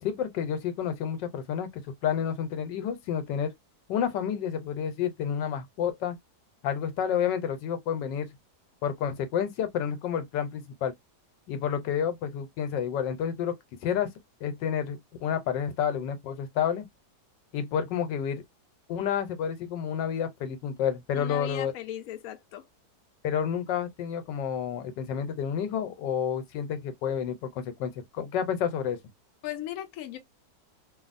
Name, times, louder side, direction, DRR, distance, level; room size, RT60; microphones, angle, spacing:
voice 1, 0.0-3.5 3.9-6.2 6.6-8.3 8.8-10.9 11.5-13.6 13.8-14.1 14.4-16.8 17.5-18.4 18.9-21.7 23.2-29.0, left 8 dB, 85° left, 1.4 m, -30 dB
voice 2, 21.1-22.7 29.4-30.2, left 12 dB, 65° left, 0.9 m, -37 dB
3.1 x 2.3 x 2.5 m
omnidirectional pair, 1.9 m